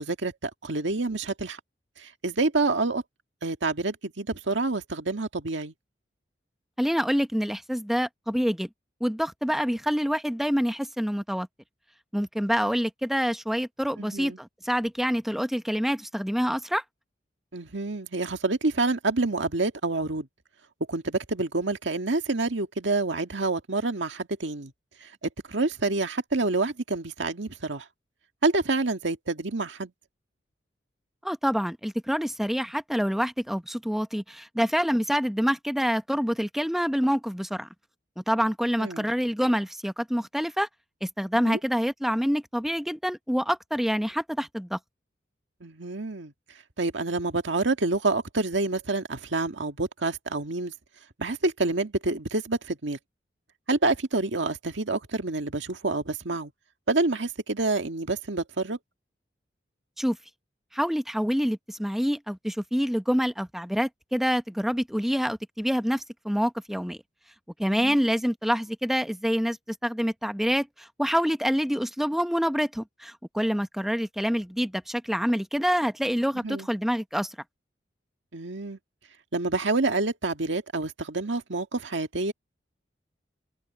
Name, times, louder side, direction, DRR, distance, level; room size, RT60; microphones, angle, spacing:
voice 1, 0.0-1.6 2.0-3.0 3.4-5.7 14.0-14.4 17.5-20.3 20.9-24.7 25.0-27.9 28.4-29.9 38.8-39.1 41.4-41.6 45.6-46.3 46.8-50.7 51.2-53.0 53.7-56.5 56.9-58.8 67.7-68.0 76.4-76.7 78.3-78.8 79.3-82.3, right 3 dB, 90° right, 1.8 m, -28 dB
voice 2, 6.8-8.7 9.0-11.5 12.1-16.8 31.2-37.7 38.2-40.7 41.0-44.8 60.0-60.2 60.7-67.0 67.6-77.4, equal, ahead, 0.8 m, -26 dB
head